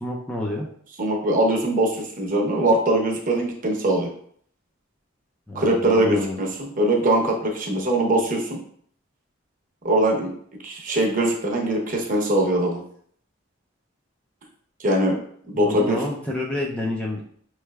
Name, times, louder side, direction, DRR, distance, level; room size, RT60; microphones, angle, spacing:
voice 1, 0.0-0.7 5.5-6.4 15.5-17.3, left 1 dB, 5° left, -2 dB, 0.5 m, -29 dB
voice 2, 1.0-4.1 5.5-8.6 9.8-10.3 10.6-12.8 14.8-15.2 15.5-16.0, right 1 dB, 45° right, 0 dB, 0.9 m, -22 dB
5.6 x 3.2 x 2.3 m, 0.62 s
head